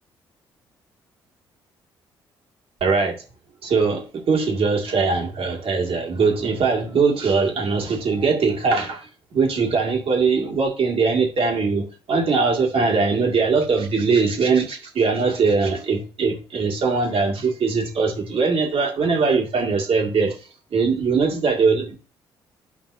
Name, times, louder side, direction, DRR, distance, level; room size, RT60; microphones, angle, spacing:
voice 1, 2.8-3.2 3.6-20.3 20.7-22.0, right 4 dB, 50° right, 2.1 m, -21 dB
10.5 x 5.4 x 2.6 m
hypercardioid pair, 45°, 12 cm